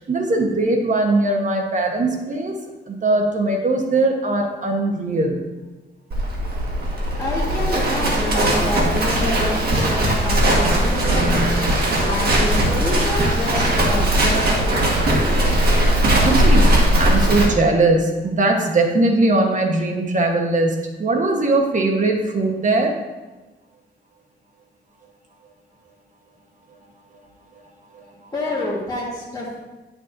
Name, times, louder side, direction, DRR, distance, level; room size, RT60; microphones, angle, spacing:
voice 1, 0.0-2.5 2.9-5.4 12.0-12.1 16.2-23.0 27.9-28.0, right 2 dB, 45° right, 2 dB, 1.2 m, -20 dB
Livestock farm animals working animals, 6.1-17.5, right 1 dB, 60° right, 1.6 m, -19 dB
voice 2, 7.2-11.4 12.0-15.4 28.3-29.6, left 1 dB, 20° left, -6 dB, 1.7 m, -27 dB
10.5 x 6.3 x 2.7 m, 1.2 s
cardioid pair, 110°, 18 cm